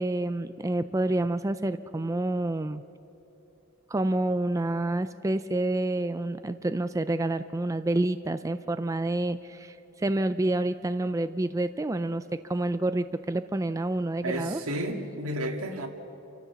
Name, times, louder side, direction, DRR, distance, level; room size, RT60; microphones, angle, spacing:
voice 1, 0.0-2.8 3.9-14.6, right 2 dB, 15° right, 0.4 m, -28 dB
voice 2, 14.2-15.9, right 1 dB, 80° right, 2.0 m, -32 dB
28.5 x 14.0 x 7.0 m
head